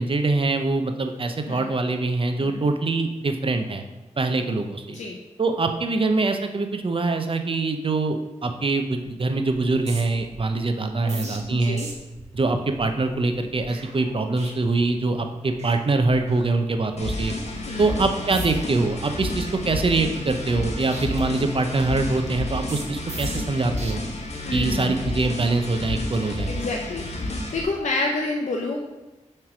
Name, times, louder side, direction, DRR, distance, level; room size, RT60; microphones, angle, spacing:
voice 1, 0.0-3.8 4.2-5.0 5.4-11.8 12.3-17.3 17.8-24.0 24.5-26.5, right 3 dB, 45° right, 6 dB, 0.7 m, -24 dB
sound 1, 8.9-9.2 9.5-15.2 15.5-15.8 16.0-17.0 17.4-17.7 18.2-18.7 19.2-20.7 20.9-23.9 24.5-24.8, right 2 dB, 70° right, 1.3 m, -42 dB
voice 2, 11.0-11.9 17.7-17.9 24.4-25.0 26.5-28.8, left 3 dB, 85° left, -1 dB, 0.7 m, -29 dB
sound 2, 17.0-27.6, left 1 dB, 65° left, 1.2 m, -31 dB
7.4 x 3.3 x 6.0 m, 1.1 s
wide cardioid pair, 90°, 12 cm